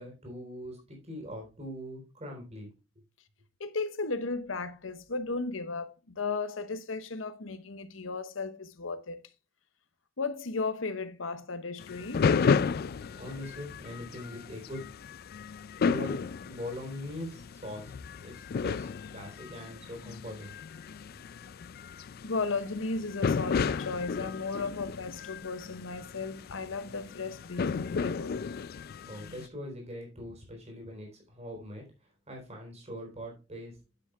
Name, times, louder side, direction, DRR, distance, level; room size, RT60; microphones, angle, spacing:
voice 1, 0.0-2.7 13.2-14.9 15.8-17.9 18.2-20.5 29.1-31.9 32.3-33.8, left 1 dB, 35° right, 4.0 m, -42 dB
voice 2, 3.6-9.2 10.2-12.3 22.2-28.3, left 3 dB, 90° left, 0.9 m, -35 dB
sound 1, 11.8-29.5, left 5 dB, 50° left, 0.4 m, -33 dB
9.2 x 7.4 x 3.3 m
head